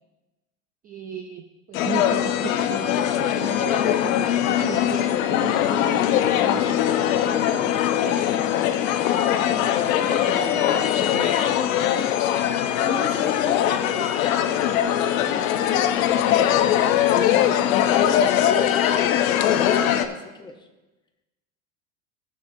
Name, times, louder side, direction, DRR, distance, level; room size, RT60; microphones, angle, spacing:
voice 1, 0.8-8.6 9.8-11.2 13.9-14.0, right 7 dB, 25° right, 5 dB, 0.4 m, -36 dB
sound 1, 1.7-20.1, left 11 dB, 85° left, 0.8 m, -21 dB
voice 2, 9.4-10.8 11.1-12.1 12.8-14.0 14.4-20.7, left 3 dB, 10° left, 4 dB, 0.8 m, -37 dB
18.5 x 6.7 x 2.6 m, 1.1 s
supercardioid pair, 140°, 39 cm